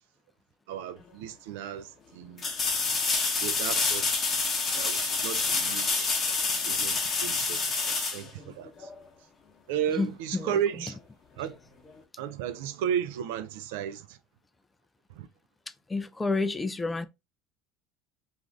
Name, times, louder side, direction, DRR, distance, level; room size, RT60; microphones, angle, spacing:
voice 1, 0.7-2.5 3.4-4.4 4.8-6.1 6.6-8.9 9.7-11.0 11.4-11.6 12.2-14.2 15.1-15.3, right 9 dB, 80° right, 0.4 m, -34 dB
sound 1, 1.0-1.1 2.4-9.0 11.9-12.0, left 4 dB, 35° left, 0.8 m, -28 dB
voice 2, 15.9-17.1, left 3 dB, 15° left, 0.3 m, -29 dB
2.5 x 2.4 x 3.2 m
supercardioid pair, 100°, 0 cm